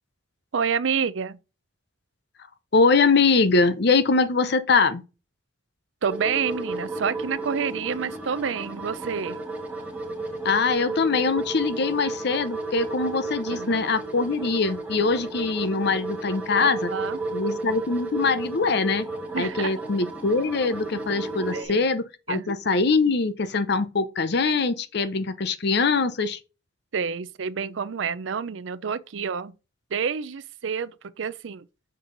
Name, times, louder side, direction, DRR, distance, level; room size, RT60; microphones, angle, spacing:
voice 1, 0.5-1.4 6.0-9.4 13.5-13.8 16.6-17.2 19.3-19.7 21.5-21.9 22.3-22.5 26.9-29.5 29.9-31.7, right 6 dB, 75° right, 0.5 m, -28 dB
voice 2, 2.7-5.0 10.4-16.9 17.3-19.0 19.4-26.4, left 4 dB, 60° left, 0.7 m, -23 dB
sound 1, 6.1-21.6, right 2 dB, 10° right, 1.3 m, -33 dB
6.0 x 5.4 x 3.9 m
head